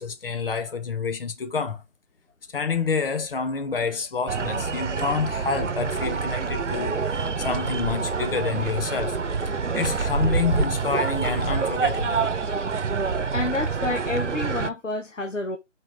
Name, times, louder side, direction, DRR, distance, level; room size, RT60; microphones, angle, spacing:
voice 1, 0.0-1.8 2.5-7.0 7.4-9.2 9.7-12.3, left 5 dB, 50° left, 1.4 m, -28 dB
sound 1, 4.3-14.7, right 5 dB, 75° right, 0.9 m, -26 dB
voice 2, 13.3-15.6, left 2 dB, 90° left, 1.1 m, -29 dB
6.2 x 4.4 x 3.8 m
figure-of-eight pair, 150°, 37 cm